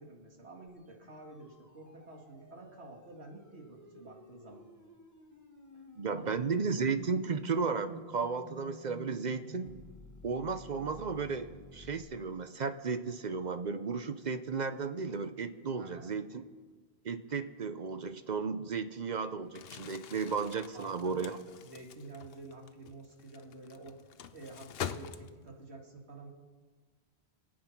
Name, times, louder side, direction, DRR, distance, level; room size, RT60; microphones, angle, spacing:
voice 1, 0.0-4.6 6.2-6.3 7.1-7.3 15.8-16.1 20.7-21.3 21.6-24.0 24.3-26.3, right 2 dB, 75° right, 0 dB, 2.4 m, -50 dB
sound 1, 0.7-12.0, right 1 dB, 15° left, 1.5 m, -53 dB
voice 2, 6.0-9.7 10.2-16.4 17.0-21.4, right 5 dB, 50° right, 10 dB, 0.8 m, -34 dB
Crumpling crinkling, 19.5-25.7, left 9 dB, 65° left, 0.8 m, -45 dB
24.5 x 8.9 x 5.9 m, 1.5 s
omnidirectional pair, 1.1 m